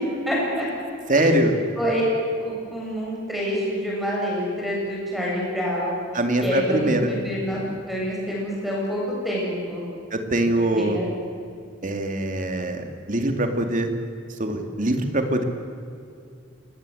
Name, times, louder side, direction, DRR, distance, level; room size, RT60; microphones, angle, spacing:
voice 1, 0.3-0.7 1.1-1.4 1.8-2.0 2.4-5.9 6.4-7.6 7.9-9.8 10.6-11.1, equal, ahead, -5 dB, 7.5 m, -27 dB
voice 2, 1.1-1.5 6.1-7.1 10.1-11.0 11.8-13.9 14.4-15.4, right 1 dB, 40° right, 5 dB, 2.4 m, -23 dB
26.5 x 20.0 x 7.9 m, 2.4 s
head